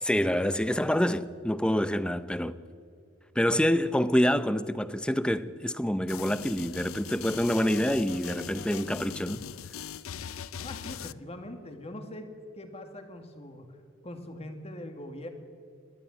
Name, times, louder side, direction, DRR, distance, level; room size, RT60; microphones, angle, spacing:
voice 1, 0.0-2.6 3.4-9.4, equal, 5° left, 0.6 m, -27 dB
sound 1, 6.1-11.1, left 8 dB, 75° left, 0.5 m, -40 dB
voice 2, 10.6-13.8 14.0-15.3, left 1 dB, 30° left, 2.0 m, -42 dB
21.0 x 14.5 x 9.9 m
head